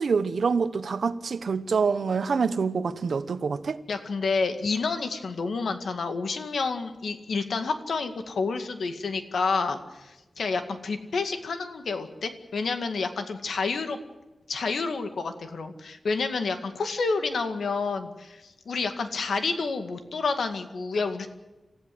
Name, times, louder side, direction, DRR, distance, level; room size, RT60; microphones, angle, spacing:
voice 1, 0.0-3.8, right 5 dB, 70° right, 1.1 m, -26 dB
voice 2, 3.9-14.0 14.5-21.3, left 4 dB, 85° left, 2.0 m, -29 dB
27.0 x 15.0 x 7.9 m
wide cardioid pair, 145°, 0 cm